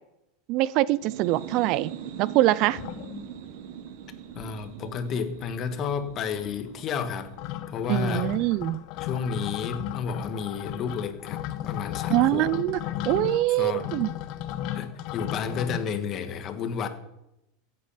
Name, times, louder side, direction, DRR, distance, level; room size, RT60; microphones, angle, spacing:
voice 1, 0.5-1.9 2.2-2.8 7.9-8.8 12.1-12.8 13.1-14.1, right 16 dB, 50° right, 0.4 m, -23 dB
sound 1, 0.9-8.4, right 9 dB, 70° right, 1.4 m, -42 dB
sound 2, 2.7-3.6 4.0-4.1 4.3-5.0 5.2-15.8, left 13 dB, 55° left, 1.0 m, -35 dB
voice 2, 4.3-7.3 7.7-8.3 9.0-12.5 13.6-13.9 14.7-16.9, left 6 dB, 35° left, 1.6 m, -31 dB
15.5 x 8.4 x 5.8 m
supercardioid pair, 135°, 0 cm